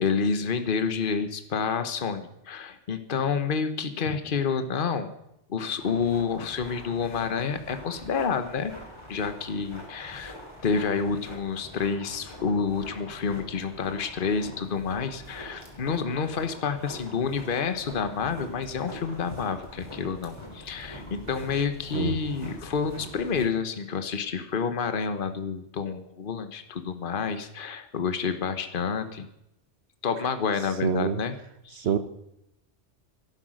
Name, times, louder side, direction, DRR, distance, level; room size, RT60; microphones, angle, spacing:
voice 1, 0.0-5.1 5.5-8.8 9.1-10.3 10.6-29.3 30.0-31.3 31.6-31.9, left 5 dB, 50° left, 9 dB, 1.2 m, -29 dB
sound 1, 5.8-23.4, left 1 dB, 25° left, 3.5 m, -44 dB
voice 2, 30.8-31.2 31.8-32.0, right 7 dB, 65° right, 12 dB, 1.1 m, -25 dB
13.0 x 12.0 x 6.4 m, 0.80 s
omnidirectional pair, 1.2 m